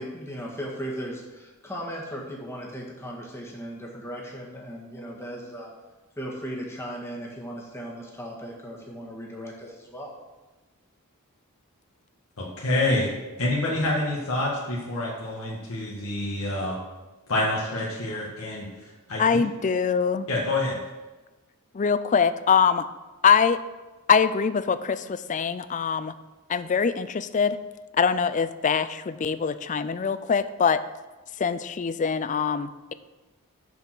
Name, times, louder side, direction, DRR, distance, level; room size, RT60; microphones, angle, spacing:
voice 1, 0.0-5.7 6.2-10.1, equal, 10° left, -3 dB, 1.7 m, -37 dB
voice 2, 12.4-13.1 13.4-16.8 17.3-19.2 20.3-20.8, left 2 dB, 70° left, -5 dB, 1.8 m, -27 dB
voice 3, 19.2-20.3 21.7-22.9 23.2-23.6 24.1-26.1 26.5-27.6 27.9-30.8 31.4-32.9, left 6 dB, 35° left, 14 dB, 0.4 m, -23 dB
7.0 x 6.8 x 6.1 m, 1.2 s
head